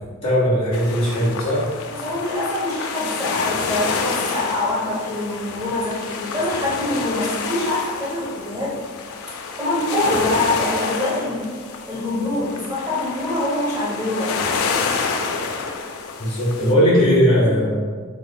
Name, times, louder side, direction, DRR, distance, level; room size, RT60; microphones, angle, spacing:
voice 1, 0.2-1.6 16.2-17.8, equal, 30° left, -7 dB, 1.1 m, -18 dB
sound 1, 0.7-16.7, left 4 dB, 90° left, 0.4 m, -28 dB
voice 2, 1.9-8.8 9.1-11.5 11.9-14.3, left 1 dB, 15° right, -7 dB, 0.6 m, -24 dB
3.8 x 3.3 x 2.2 m, 1.5 s
head